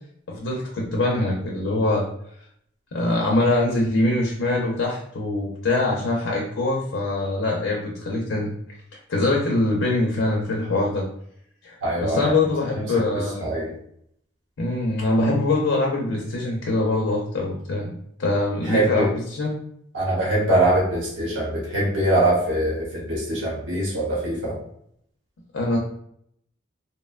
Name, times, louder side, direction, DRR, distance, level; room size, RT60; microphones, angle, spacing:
voice 1, 0.3-2.1 2.9-8.5 9.1-11.1 11.6-13.5 14.6-19.6 25.5-25.8, left 2 dB, 75° left, -1 dB, 0.5 m, -23 dB
voice 2, 11.8-12.3 13.4-13.7 18.7-19.1 19.9-24.5, right 1 dB, 70° right, -5 dB, 0.9 m, -22 dB
2.7 x 2.1 x 2.3 m, 0.70 s
head